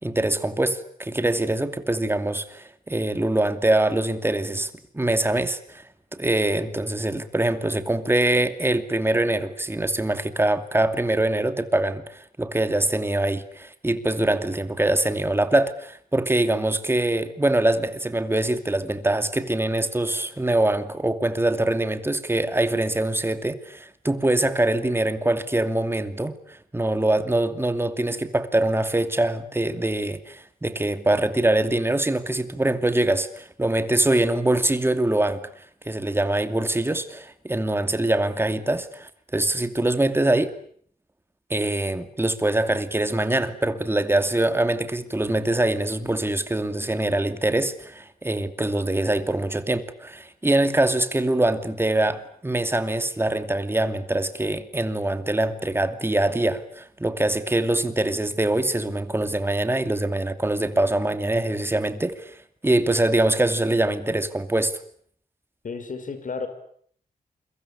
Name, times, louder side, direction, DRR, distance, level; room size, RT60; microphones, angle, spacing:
voice 1, 0.0-5.8 6.1-35.4 35.8-40.5 41.5-62.4 62.6-64.7, right 1 dB, 15° right, 2.6 m, -24 dB
voice 2, 65.6-66.5, left 4 dB, 55° left, 5.7 m, -32 dB
28.5 x 23.5 x 8.6 m
wide cardioid pair, 105°, 16 cm